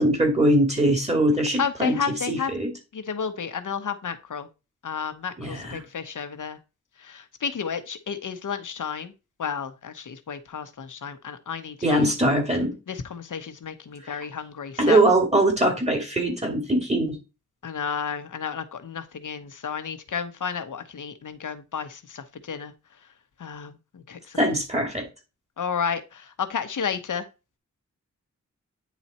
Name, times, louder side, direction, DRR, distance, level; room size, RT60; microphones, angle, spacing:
voice 1, 0.0-1.9 2.3-2.7 5.4-5.8 11.8-12.7 14.0-14.2 14.8-17.2 24.4-25.1, right 1 dB, 20° right, 2 dB, 2.6 m, -22 dB
voice 2, 1.6-2.5 2.9-4.5 4.8-6.6 7.0-9.1 9.4-12.1 12.9-15.0 17.6-23.1 23.4-24.4 25.6-27.3, left 6 dB, 90° left, 10 dB, 1.0 m, -32 dB
9.4 x 4.0 x 4.2 m, 0.28 s
wide cardioid pair, 105°, 30 cm